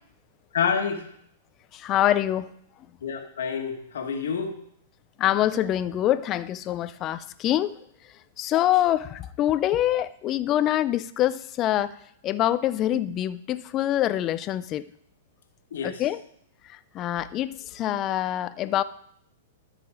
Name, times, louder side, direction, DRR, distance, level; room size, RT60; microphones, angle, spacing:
voice 1, 0.5-1.0 3.0-4.5 15.7-16.0, left 6 dB, 75° left, 4 dB, 1.5 m, -28 dB
voice 2, 1.7-2.5 5.2-7.7 8.4-11.9 12.2-14.8 15.8-16.2 16.7-18.8, left 12 dB, 30° left, 15 dB, 0.5 m, -25 dB
13.0 x 5.0 x 4.8 m, 0.70 s
hypercardioid pair, 125°, 0 cm